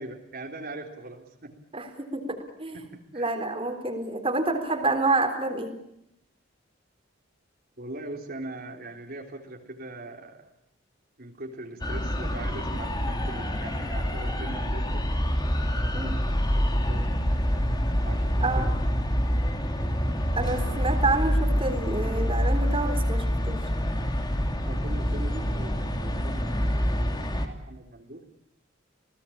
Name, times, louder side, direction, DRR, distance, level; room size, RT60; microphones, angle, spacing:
voice 1, 0.0-1.6 2.7-3.3 7.8-10.5 11.2-15.1 15.8-17.2 18.0-18.7 24.7-28.2, right 2 dB, 50° right, 2 dB, 3.6 m, -41 dB
voice 2, 1.7-2.8 3.1-5.8 15.9-16.2 18.4-18.7 20.3-23.6, right 2 dB, 30° right, 5 dB, 3.9 m, -28 dB
sound 1, 11.8-27.5, equal, 20° left, 3.1 m, -26 dB
29.5 x 19.0 x 8.7 m, 0.78 s
head